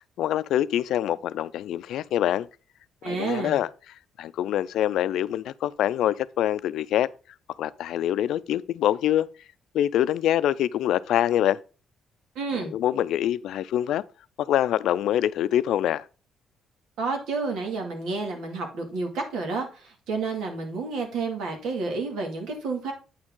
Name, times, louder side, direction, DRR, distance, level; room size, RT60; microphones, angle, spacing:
voice 1, 0.2-2.5 3.0-3.7 4.2-7.1 7.6-9.3 9.7-11.6 12.5-14.0 14.4-16.1, left 11 dB, 80° left, 0.4 m, -25 dB
voice 2, 3.0-3.6 12.4-12.7 17.0-22.9, right 4 dB, 85° right, 2.3 m, -30 dB
8.6 x 6.2 x 3.8 m
cardioid pair, 90°, 0 cm